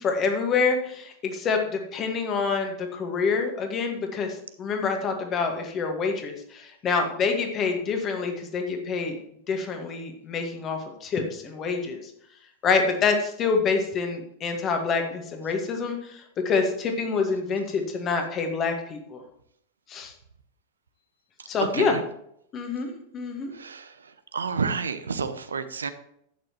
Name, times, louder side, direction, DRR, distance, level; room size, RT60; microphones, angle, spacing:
voice 1, 0.0-9.2 9.5-12.0 12.6-19.2 19.9-20.1 21.5-22.0 22.5-23.5, left 5 dB, 30° left, 4 dB, 1.8 m, -27 dB
voice 2, 23.5-25.9, right 5 dB, 70° right, 11 dB, 0.6 m, -30 dB
11.0 x 8.6 x 3.1 m, 0.73 s
figure-of-eight pair, 90°, 0 cm